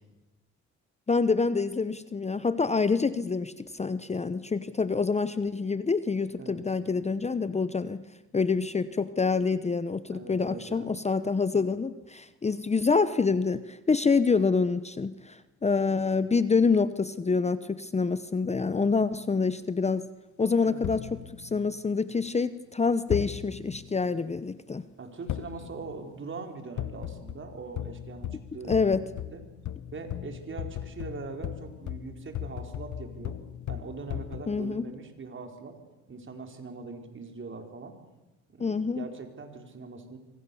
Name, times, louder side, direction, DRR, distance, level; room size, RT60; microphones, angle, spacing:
voice 1, 1.1-8.0 8.3-20.1 20.4-21.1 21.4-24.9 28.7-29.1 34.5-34.9 38.6-39.1, left 4 dB, 20° left, 14 dB, 0.9 m, -26 dB
voice 2, 10.1-10.9 20.6-20.9 25.0-28.8 29.3-29.4 29.9-33.4 33.7-35.7 36.1-37.9 38.5-40.2, right 4 dB, 40° right, 4 dB, 4.6 m, -41 dB
sound 1, 18.5-19.1 20.8-22.2 23.1-24.0 25.3-26.1 26.8-34.4, left 11 dB, 70° left, 1.3 m, -38 dB
26.5 x 24.5 x 7.1 m, 1.1 s
cardioid pair, 90°, 30 cm